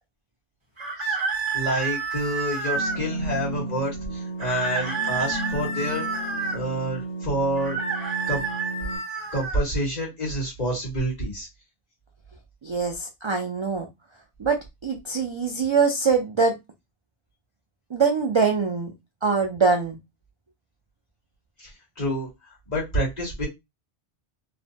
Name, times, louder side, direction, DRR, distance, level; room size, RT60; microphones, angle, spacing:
sound 1, 0.8-3.0 4.4-6.6 7.5-9.6, right 4 dB, 30° right, 1.0 m, -29 dB
voice 1, 1.5-6.1 6.5-7.8 8.3-8.4 9.3-11.5 21.6-21.7 22.0-22.3 22.7-23.5, equal, 40° left, -4 dB, 1.5 m, -28 dB
sound 2, 2.7-9.0, right 2 dB, 90° left, 1.5 m, -34 dB
voice 2, 12.6-13.9 14.4-16.6 17.9-18.9 19.2-20.0, right 5 dB, 50° right, 3 dB, 0.3 m, -23 dB
2.9 x 2.1 x 2.7 m, 0.20 s
omnidirectional pair, 1.1 m